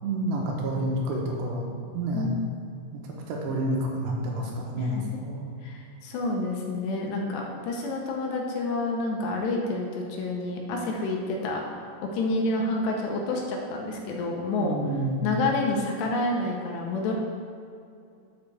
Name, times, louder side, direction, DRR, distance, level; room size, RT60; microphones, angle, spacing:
voice 1, 0.0-2.3 2.9-3.0 3.3-5.4 14.6-15.3, right 1 dB, 75° right, -1 dB, 3.1 m, -29 dB
voice 2, 5.6-11.6 12.0-14.7 15.2-17.1, left 2 dB, 75° left, 0 dB, 3.0 m, -28 dB
12.0 x 7.2 x 3.4 m, 2.4 s
omnidirectional pair, 5.2 m